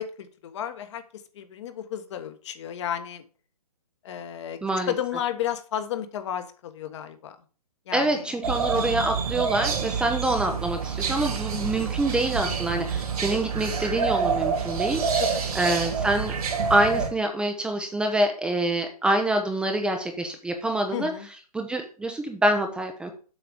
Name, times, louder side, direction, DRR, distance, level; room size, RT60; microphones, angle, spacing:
voice 1, 0.0-3.2 4.0-4.6 4.9-7.4 7.9-8.4 8.7-9.0 10.1-10.3 15.2-15.4 20.9-21.3, left 10 dB, 45° left, 8 dB, 1.5 m, -33 dB
voice 2, 4.6-4.9 7.9-15.0 15.5-16.3 16.7-21.1 21.5-23.1, right 1 dB, 5° right, 4 dB, 0.7 m, -26 dB
sound 1, 8.4-17.1, right 6 dB, 70° right, 2.8 m, -27 dB
7.9 x 5.9 x 5.2 m, 0.39 s
hypercardioid pair, 145°, 20 cm